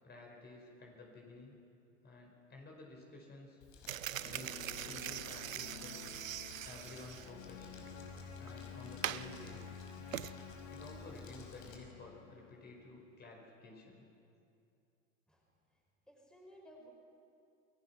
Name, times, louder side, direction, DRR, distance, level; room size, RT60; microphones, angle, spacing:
voice 1, 0.0-1.6 2.0-3.6 4.3-5.9 6.6-7.8 8.4-9.7 10.7-14.1, left 2 dB, 25° left, 0 dB, 5.4 m, -53 dB
Crumpling crinkling, 3.6-11.8, left 4 dB, 50° left, 5.5 m, -58 dB
sound 1, 3.9-10.3, right 11 dB, 80° right, 0.7 m, -43 dB
sound 2, 4.2-13.1, left 6 dB, 70° left, 2.6 m, -51 dB
voice 2, 16.1-16.9, equal, ahead, -1 dB, 5.5 m, -57 dB
29.0 x 21.5 x 6.1 m, 2.6 s
figure-of-eight pair, 85°, 39 cm